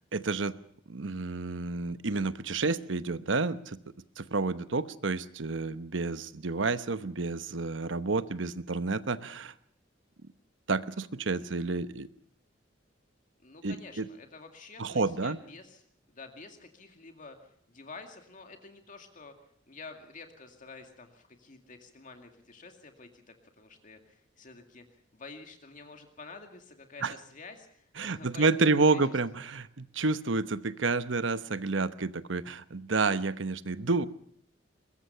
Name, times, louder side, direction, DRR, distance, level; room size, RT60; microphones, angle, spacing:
voice 1, 0.1-0.5 0.9-3.8 4.2-9.5 10.7-12.1 13.6-14.1 14.8-15.4 27.0-27.1 28.0-34.1, right 3 dB, 75° right, 13 dB, 1.0 m, -29 dB
voice 2, 13.4-15.8 16.1-19.3 19.7-29.0, left 3 dB, 45° left, 5 dB, 2.2 m, -49 dB
22.5 x 21.0 x 5.7 m, 0.68 s
head